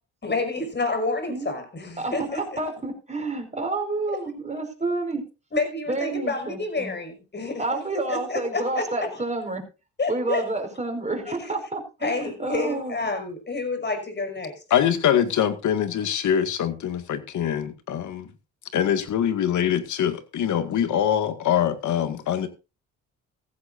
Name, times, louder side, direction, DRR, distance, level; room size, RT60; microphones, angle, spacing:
voice 1, 0.2-2.6 5.5-9.2 10.0-10.5 11.3-11.5 12.0-14.6, left 3 dB, 35° left, 6 dB, 5.6 m, -29 dB
voice 2, 2.0-5.2 5.9-6.9 7.6-9.6 10.1-12.9, right 2 dB, 20° right, 3 dB, 5.3 m, -29 dB
voice 3, 14.7-18.3 18.7-22.5, left 9 dB, 65° left, 10 dB, 2.0 m, -23 dB
16.0 x 15.0 x 2.6 m, 0.29 s
supercardioid pair, 65°, 32 cm